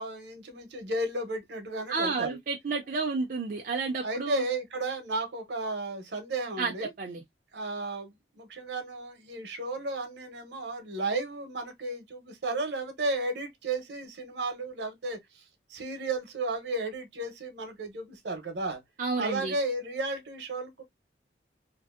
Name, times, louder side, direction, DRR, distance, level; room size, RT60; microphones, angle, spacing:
voice 1, 0.0-2.4 4.0-6.9 7.5-15.4 15.7-18.8 19.2-20.8, right 2 dB, 75° right, 0.8 m, -33 dB
voice 2, 1.9-4.4 6.6-7.2 19.0-19.5, right 4 dB, 50° right, 0.4 m, -31 dB
2.6 x 2.5 x 2.3 m
head